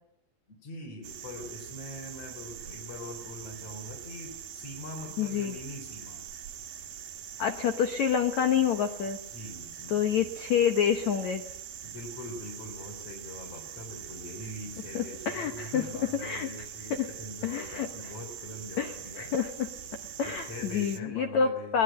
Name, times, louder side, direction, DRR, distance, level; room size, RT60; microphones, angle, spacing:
voice 1, 0.5-6.2 9.2-10.3 11.8-19.3 20.2-21.8, left 1 dB, 35° left, -1 dB, 4.3 m, -43 dB
sound 1, 1.0-21.0, right 9 dB, 60° right, 2.6 m, -43 dB
voice 2, 5.2-5.5 7.4-9.2 9.9-11.4 14.9-15.8 16.2-16.5 16.9-17.1 17.4-17.9 18.8-19.7 20.2-21.8, left 8 dB, 80° left, 7 dB, 1.6 m, -28 dB
22.5 x 20.0 x 8.9 m, 0.79 s
omnidirectional pair, 5.1 m